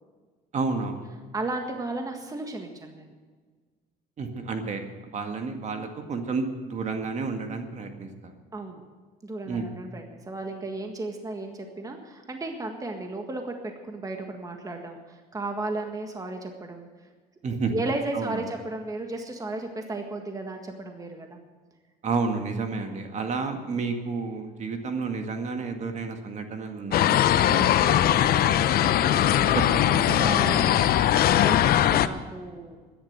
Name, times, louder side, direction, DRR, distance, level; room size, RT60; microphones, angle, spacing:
voice 1, 0.5-1.1 4.2-4.8 5.1-8.3 9.5-9.7 17.4-17.7 18.1-18.4 22.0-27.2 29.7-30.7, right 4 dB, 45° right, 5 dB, 1.9 m, -31 dB
voice 2, 1.3-3.1 8.5-8.8 9.2-16.9 17.5-21.4 27.5-29.6 30.2-30.9 31.4-32.8, right 2 dB, 20° right, 4 dB, 1.7 m, -35 dB
sound 1, 26.9-32.1, left 11 dB, 65° left, 0.7 m, -20 dB
13.5 x 10.5 x 8.0 m, 1.5 s
cardioid pair, 110°, 17 cm